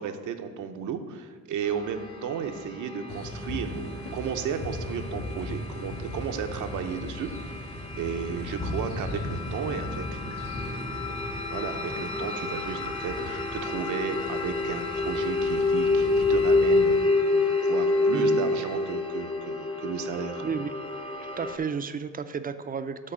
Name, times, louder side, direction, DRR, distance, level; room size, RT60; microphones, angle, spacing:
voice 1, 0.0-7.7 7.9-11.2 11.5-17.0 17.3-20.4, right 7 dB, 75° right, 6 dB, 0.7 m, -34 dB
sound 1, 1.6-21.6, left 3 dB, 15° left, 0.7 m, -29 dB
sound 2, 3.1-17.1, left 1 dB, 50° left, 1.4 m, -38 dB
voice 2, 20.4-20.7 21.4-23.1, right 6 dB, 30° right, 11 dB, 0.4 m, -32 dB
7.5 x 4.0 x 6.8 m, 1.5 s
cardioid pair, 90°, 30 cm